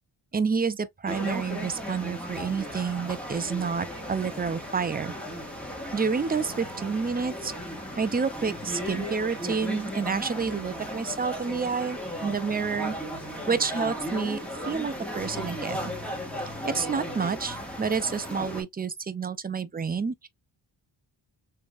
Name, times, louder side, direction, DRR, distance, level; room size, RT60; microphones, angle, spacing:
voice 1, 0.3-5.1 5.9-7.5 8.0-12.9 13.5-14.4 14.7-15.9 16.6-20.3, right 5 dB, 20° right, 0.3 m, -29 dB
sound 1, 1.1-18.6, equal, 5° left, 1.2 m, -36 dB
3.5 x 3.3 x 2.3 m
wide cardioid pair, 95°, 48 cm